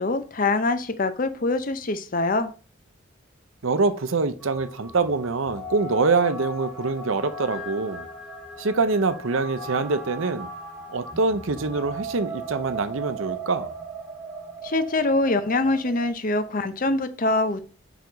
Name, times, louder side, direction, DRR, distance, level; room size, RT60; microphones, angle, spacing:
voice 1, 0.0-2.5 14.6-17.6, left 2 dB, 40° left, 0.6 m, -24 dB
voice 2, 3.6-8.1 8.6-10.5 10.9-13.7, right 3 dB, 75° right, 0.7 m, -24 dB
sound 1, 4.4-16.1, right 2 dB, ahead, 1.7 m, -37 dB
5.0 x 4.7 x 5.2 m
head